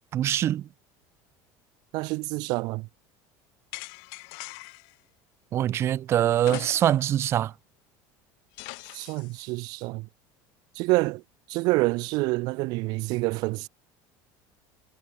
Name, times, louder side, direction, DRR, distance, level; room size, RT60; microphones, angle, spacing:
voice 1, 0.1-0.7 5.5-7.5, right 11 dB, 30° right, 1.1 m, -24 dB
voice 2, 1.9-2.9 8.9-10.1 10.7-11.2 11.5-13.7, right 24 dB, 50° right, 0.8 m, -27 dB
sound 1, 3.7-4.9 6.4-7.2 7.5-7.6 8.6-9.4, left 40 dB or more, 60° left, 2.6 m, -41 dB
cardioid pair, 175°, 9 cm